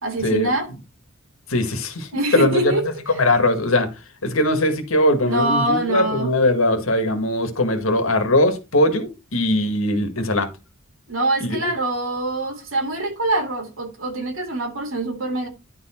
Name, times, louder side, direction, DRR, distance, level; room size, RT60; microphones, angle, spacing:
voice 1, 0.0-0.7 2.1-2.8 5.2-6.3 11.1-15.5, right 2 dB, 85° right, 2.5 m, -24 dB
voice 2, 1.5-2.7 3.2-3.9 4.2-10.5 11.4-11.7, left 1 dB, 90° left, 1.8 m, -20 dB
11.0 x 4.3 x 4.4 m
head